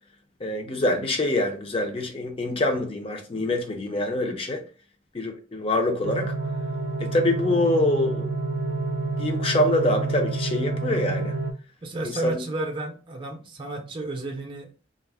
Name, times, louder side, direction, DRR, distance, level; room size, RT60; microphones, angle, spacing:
voice 1, 0.4-4.6 5.1-6.3 7.0-8.3 9.2-11.4 12.0-12.3, left 1 dB, 30° left, 0.5 m, -25 dB
sound 1, 6.0-11.5, right 3 dB, 85° right, 0.4 m, -28 dB
voice 2, 11.8-14.7, right 2 dB, 25° right, 0.5 m, -32 dB
2.3 x 2.0 x 3.3 m
head